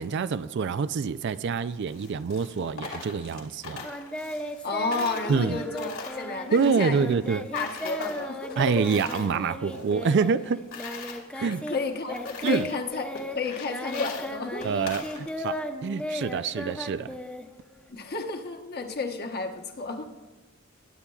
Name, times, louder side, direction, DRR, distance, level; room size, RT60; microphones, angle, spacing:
voice 1, 0.0-3.9 5.3-5.6 6.5-7.5 8.6-10.6 11.4-11.7 12.4-12.7 14.6-15.5 15.8-17.2, right 5 dB, 55° right, 14 dB, 0.4 m, -26 dB
Coin (dropping), 1.8-4.6 4.9-7.3 7.6-9.4 9.7-11.2 11.7-11.8 12.2-12.8 13.1-15.6, left 5 dB, 85° left, 2.1 m, -42 dB
Singing, 3.8-11.8 12.1-17.9, equal, 5° left, 0.7 m, -36 dB
voice 2, 4.6-7.1 7.5-8.9 11.1-13.1 13.3-14.7 17.9-20.1, left 4 dB, 50° left, 4 dB, 1.1 m, -32 dB
21.0 x 9.8 x 2.4 m, 1.2 s
head